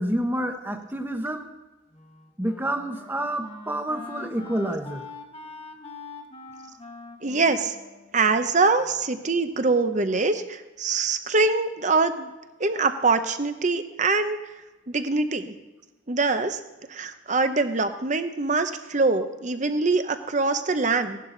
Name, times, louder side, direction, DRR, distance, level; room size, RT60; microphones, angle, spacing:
voice 1, 0.0-1.5 2.4-5.1 20.1-20.2, right 1 dB, 10° right, 5 dB, 1.0 m, -28 dB
Wind instrument woodwind instrument, 1.9-9.1, left 3 dB, 30° left, 1.1 m, -44 dB
voice 2, 7.2-7.7 8.1-12.3 12.6-14.4 14.9-15.5 16.1-16.6 16.9-21.2, right 3 dB, 40° right, 9 dB, 0.9 m, -24 dB
17.5 x 11.5 x 4.0 m, 1.1 s
head